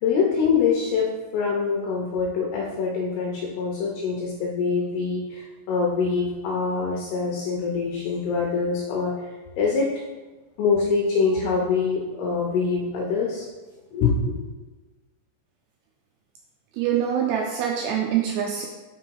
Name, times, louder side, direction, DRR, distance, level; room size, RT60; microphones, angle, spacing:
voice 1, 0.0-9.1 9.6-10.0 10.6-13.5 13.9-14.3, left 5 dB, 75° left, -1 dB, 2.5 m, -24 dB
voice 2, 16.7-18.7, right 9 dB, 85° right, 1 dB, 2.4 m, -24 dB
6.0 x 4.7 x 4.6 m, 1.2 s
omnidirectional pair, 5.2 m